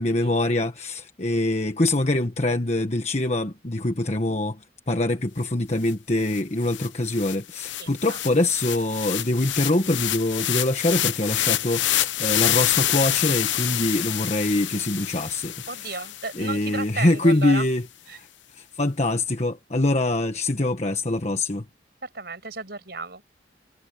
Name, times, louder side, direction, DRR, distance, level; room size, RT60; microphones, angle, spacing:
voice 1, 0.0-4.6 4.9-15.5 15.8-15.9 16.3-17.8 18.1-18.3 18.5-21.6, left 2 dB, 35° left, 1.3 m, -24 dB
sound 1, 5.9-6.0 6.2-16.6, left 13 dB, 90° left, 0.9 m, -27 dB
voice 2, 7.8-8.2 15.7-17.7 18.1-18.2 22.0-23.3, right 3 dB, 60° right, 6.7 m, -34 dB
head